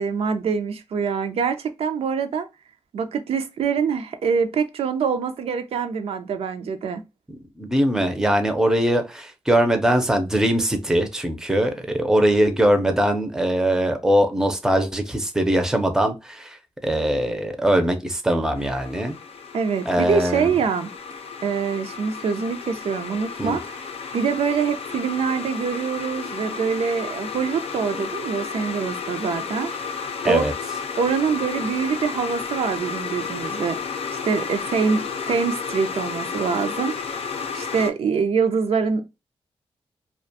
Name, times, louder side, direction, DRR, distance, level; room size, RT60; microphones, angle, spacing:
voice 1, 0.0-2.5 2.9-7.0 19.5-20.9 21.4-23.8 24.1-29.7 30.3-30.5 31.0-33.8 34.3-36.9 37.5-39.1, right 6 dB, 80° right, 0.4 m, -24 dB
voice 2, 7.6-19.2 19.9-20.5 23.4-23.6 30.2-30.5, right 1 dB, 5° right, 0.5 m, -21 dB
sound 1, 18.5-37.9, left 6 dB, 85° left, 0.4 m, -32 dB
2.4 x 2.2 x 2.6 m
wide cardioid pair, 130°, 10 cm